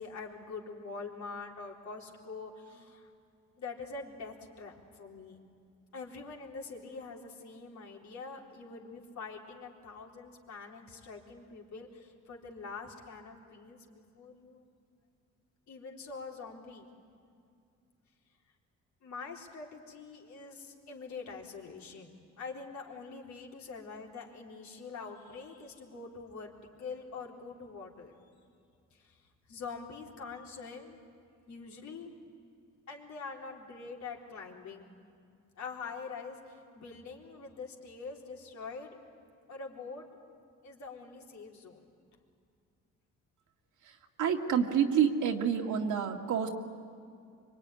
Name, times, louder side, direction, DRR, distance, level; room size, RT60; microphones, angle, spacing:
voice 1, 0.0-3.1 3.6-5.4 5.9-14.6 15.7-16.9 19.0-28.1 28.9-29.2 29.5-31.0 31.5-32.1 32.9-34.9 35.6-39.0 39.5-40.1 40.6-41.9, left 4 dB, 70° left, 0 dB, 4.1 m, -45 dB
voice 2, 44.2-46.5, right 8 dB, 75° right, 3 dB, 2.3 m, -28 dB
25.0 x 24.0 x 10.0 m, 2.4 s
cardioid pair, 90°, 30 cm